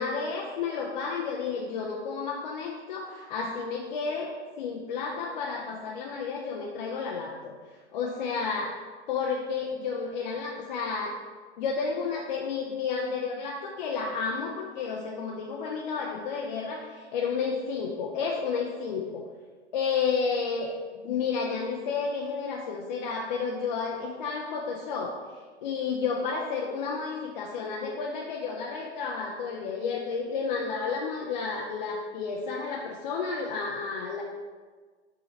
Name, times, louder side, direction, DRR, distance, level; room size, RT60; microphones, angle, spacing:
voice 1, 0.0-7.5 7.9-8.7 9.1-11.2 11.6-19.2 19.7-20.7 21.0-25.1 25.6-34.2, left 5 dB, 40° left, -2 dB, 0.7 m, -31 dB
6.6 x 3.8 x 4.2 m, 1.4 s
figure-of-eight pair, 110°, 35 cm